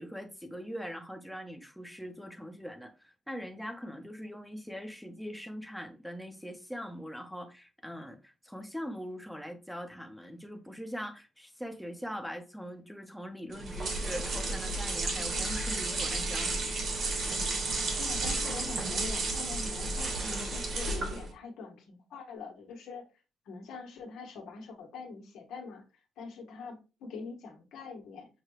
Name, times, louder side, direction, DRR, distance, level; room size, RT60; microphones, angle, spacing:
voice 1, 0.0-16.6, equal, ahead, 0.7 m, -42 dB
sound 1, 13.5-21.3, right 3 dB, 60° right, 1.5 m, -32 dB
voice 2, 17.9-23.1 23.4-25.8 26.2-28.3, left 4 dB, 85° left, 1.2 m, -44 dB
6.6 x 2.3 x 3.0 m
cardioid pair, 110°, 0 cm